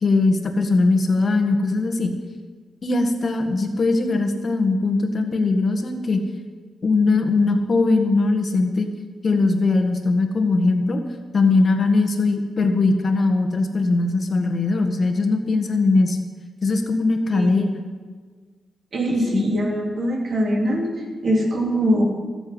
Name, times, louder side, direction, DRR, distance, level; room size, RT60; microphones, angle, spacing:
voice 1, 0.0-2.1 2.8-6.2 6.8-8.9 9.2-11.0 11.3-16.2 16.6-17.8 19.3-19.5, left 3 dB, 55° left, 4 dB, 1.7 m, -20 dB
voice 2, 17.3-17.7 18.9-20.9 21.2-22.0, equal, 60° right, -1 dB, 3.5 m, -22 dB
14.0 x 7.3 x 7.9 m, 1.5 s
cardioid pair, 55°, 0 cm